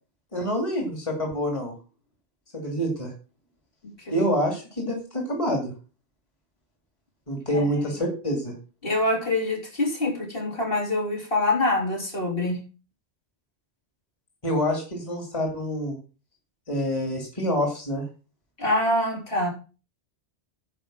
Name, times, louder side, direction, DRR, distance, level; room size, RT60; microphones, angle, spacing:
voice 1, 0.3-1.7 2.5-3.1 4.1-5.7 7.3-8.5 14.4-16.0 16.7-18.0, equal, 30° left, 0 dB, 2.7 m, -27 dB
voice 2, 3.8-4.2 7.5-7.8 8.8-12.6 18.6-19.5, left 2 dB, 60° left, -1 dB, 3.9 m, -25 dB
10.5 x 5.5 x 7.5 m, 0.34 s
omnidirectional pair, 1.1 m